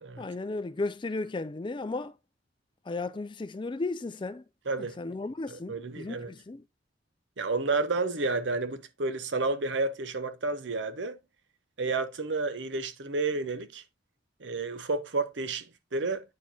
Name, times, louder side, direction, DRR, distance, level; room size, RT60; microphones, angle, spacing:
voice 1, 0.2-2.1 2.9-4.4 5.0-6.6, left 3 dB, 25° left, 0.4 m, -34 dB
voice 2, 4.7-5.0 5.5-6.3 7.4-11.2 11.8-13.8 14.4-16.2, right 3 dB, 80° right, 0.9 m, -31 dB
8.4 x 4.6 x 2.8 m
head